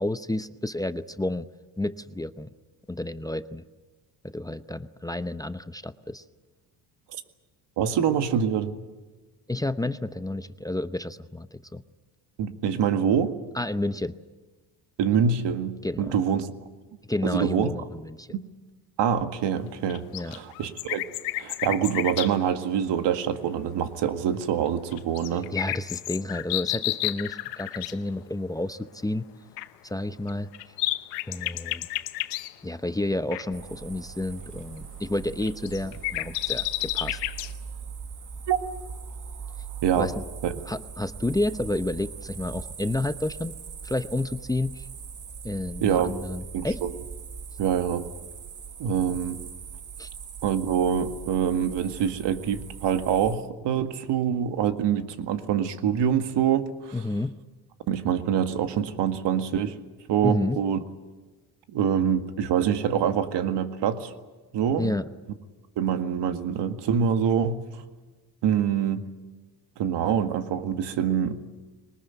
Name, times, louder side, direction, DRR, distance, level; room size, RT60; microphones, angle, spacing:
voice 1, 0.0-1.4 1.8-2.5 2.9-3.6 4.2-6.2 9.5-11.8 13.5-14.1 15.8-16.2 17.1-18.3 20.1-20.4 25.3-29.3 29.8-30.7 31.3-31.9 32.6-37.2 39.9-40.1 40.5-43.5 43.8-44.9 45.4-46.8 50.0-50.1 56.9-57.4 60.2-60.6 64.8-65.1, left 2 dB, 10° left, 12 dB, 0.8 m, -30 dB
voice 2, 7.8-8.8 12.4-13.3 15.0-16.5 17.2-17.7 18.3-18.4 19.0-21.0 21.4-25.5 38.5-38.6 39.8-40.1 40.4-40.6 45.8-46.2 46.5-46.9 47.6-48.1 48.8-49.4 50.4-57.0 57.9-59.8 60.1-60.8 61.7-64.1 64.5-64.9 65.8-67.6 68.4-69.0 69.8-71.4, right 8 dB, 60° right, 8 dB, 2.0 m, -25 dB
sound 1, 19.9-22.3 24.9-27.9 29.6-29.7 30.3-32.5 33.3-33.4 35.2-37.5, left 18 dB, 90° left, 1.1 m, -31 dB
sound 2, 33.5-53.4, right 6 dB, 40° right, 1.9 m, -40 dB
22.0 x 20.0 x 9.2 m, 1.3 s
supercardioid pair, 75°, 47 cm